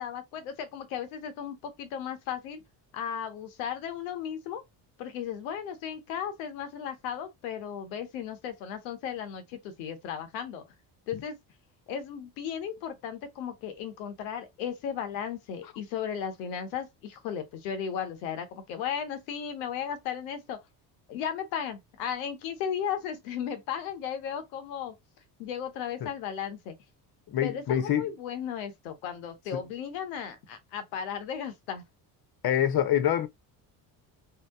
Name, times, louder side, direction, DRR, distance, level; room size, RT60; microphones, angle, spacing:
voice 1, 0.0-2.6 2.9-4.6 5.0-10.6 11.1-11.4 11.9-20.6 21.1-24.9 25.4-26.7 27.4-31.8, left 8 dB, 90° left, 0.9 m, -35 dB
voice 2, 27.3-28.0 29.5-29.6 32.4-33.3, left 10 dB, 45° left, 0.8 m, -26 dB
2.8 x 2.0 x 3.5 m
supercardioid pair, 70°, 49 cm